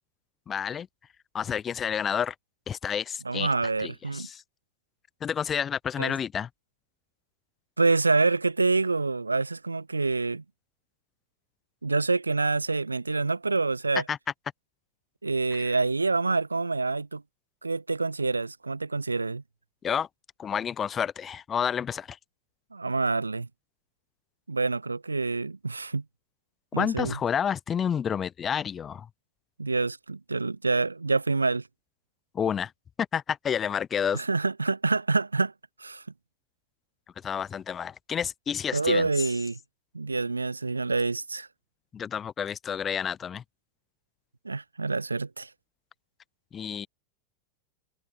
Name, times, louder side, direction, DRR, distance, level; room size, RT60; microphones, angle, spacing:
voice 1, 0.5-0.9 1.3-2.3 2.7-3.5 3.8-4.4 5.2-6.5 14.1-14.2 15.6-15.7 19.8-20.1 20.4-22.2 26.8-29.1 32.3-32.7 33.1-34.2 37.2-39.1 41.9-43.4 46.5-46.9, left 8 dB, 25° left, 0.6 m, -29 dB
voice 2, 3.2-4.3 6.0-6.2 7.8-10.4 11.8-14.0 15.2-17.2 17.6-19.4 22.7-23.5 24.5-26.0 26.7-27.2 29.6-31.6 34.1-35.5 35.8-36.0 38.7-39.6 39.9-41.5 44.4-45.5, right 3 dB, 80° right, 0.8 m, -27 dB
figure-of-eight pair, 90°, 0 cm